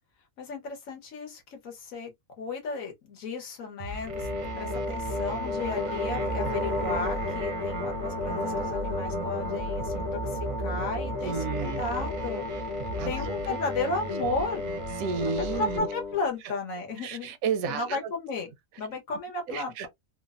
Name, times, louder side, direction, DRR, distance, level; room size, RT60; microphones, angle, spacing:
voice 1, 0.4-4.3 4.6-12.4 12.8-14.8 15.6-17.3 17.7-18.5 18.8-19.9, left 3 dB, 80° left, 1.4 m, -34 dB
sound 1, 3.8-15.8, right 3 dB, 55° right, 0.6 m, -37 dB
sound 2, 4.1-16.3, left 2 dB, 60° left, 1.1 m, -33 dB
voice 2, 11.2-11.8 13.0-13.4 15.0-15.9 17.0-18.0 19.5-19.9, right 6 dB, 85° right, 1.0 m, -32 dB
3.2 x 2.0 x 2.4 m
omnidirectional pair, 1.4 m